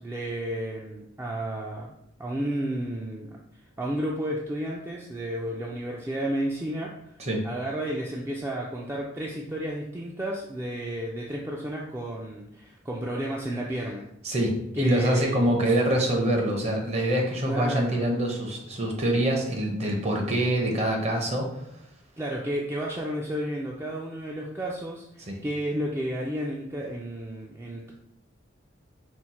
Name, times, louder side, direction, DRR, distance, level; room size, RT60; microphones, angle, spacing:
voice 1, 0.0-1.9 2.2-3.4 3.8-6.9 7.4-14.0 14.8-15.8 17.4-18.0 22.2-27.9, right 1 dB, 15° right, -3 dB, 0.3 m, -32 dB
voice 2, 14.2-21.6 25.3-25.4, right 1 dB, 35° right, 1 dB, 0.7 m, -25 dB
4.4 x 2.1 x 4.1 m, 0.77 s
head